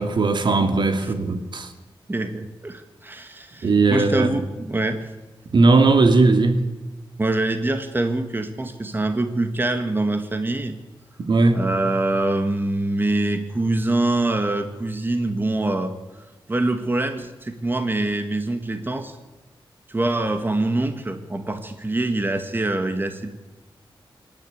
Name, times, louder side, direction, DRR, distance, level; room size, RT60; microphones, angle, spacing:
voice 1, 0.0-1.7 3.6-4.3 5.5-6.6 11.2-11.6, right 3 dB, 60° right, 2.2 m, -18 dB
voice 2, 2.1-5.0 7.2-10.8 11.5-15.9 16.5-19.2 19.9-23.3, right 2 dB, 25° right, 1.8 m, -24 dB
25.5 x 11.0 x 9.4 m
wide cardioid pair, 100°, 9 cm